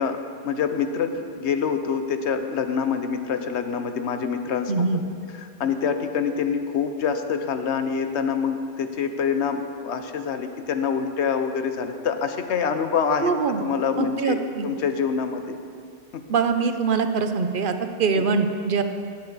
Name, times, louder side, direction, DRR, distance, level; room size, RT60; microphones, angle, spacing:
voice 1, 0.0-4.9 5.4-13.3 13.6-15.6 16.1-16.2, left 6 dB, 65° left, 8 dB, 1.0 m, -26 dB
voice 2, 4.7-5.0 13.2-13.6 14.0-14.7 16.3-18.8, right 5 dB, 50° right, 8 dB, 0.8 m, -23 dB
18.0 x 8.5 x 4.0 m, 2.3 s
omnidirectional pair, 1.3 m